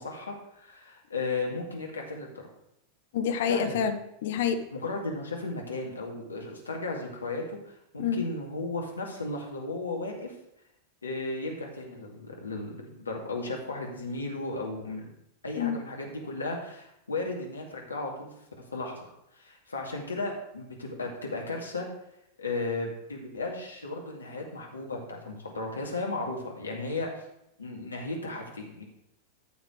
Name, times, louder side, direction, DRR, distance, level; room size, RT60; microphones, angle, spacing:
voice 1, 0.0-2.5 3.5-3.8 4.7-10.3 11.0-15.0 15.4-18.3 18.7-21.9 22.4-27.2 27.6-28.8, left 2 dB, 75° left, 0 dB, 2.3 m, -35 dB
voice 2, 3.1-4.6 8.0-8.2 15.6-15.8, left 7 dB, 55° left, 8 dB, 0.9 m, -28 dB
13.5 x 7.1 x 3.3 m, 0.80 s
figure-of-eight pair, 90°, 0 cm